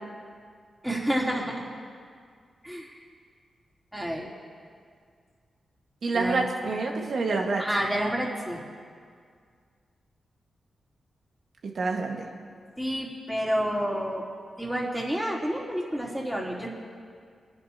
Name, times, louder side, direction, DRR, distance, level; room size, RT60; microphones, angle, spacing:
voice 1, 0.8-1.7 2.6-3.0 3.9-4.3 6.1-6.7 7.6-8.6 12.8-14.2 14.6-16.7, equal, 5° right, -4 dB, 3.3 m, -29 dB
voice 2, 6.0-7.6 11.7-12.3, right 3 dB, 70° right, 1 dB, 1.6 m, -27 dB
28.0 x 10.0 x 2.9 m, 2.1 s
cardioid pair, 55°, 0 cm